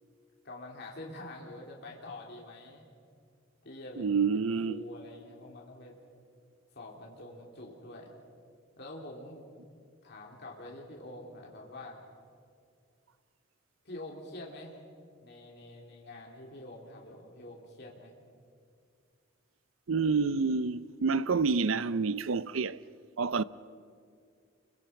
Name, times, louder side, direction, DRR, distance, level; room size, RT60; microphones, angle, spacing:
voice 1, 0.4-2.9 3.6-6.0 6.7-8.1 8.8-9.4 10.0-12.0 13.8-14.8 15.2-18.1, left 1 dB, 55° left, 3.2 m, -46 dB
voice 2, 4.0-4.8 19.9-22.8 23.2-23.4, right 4 dB, 80° right, 0.6 m, -28 dB
29.5 x 24.0 x 5.9 m
head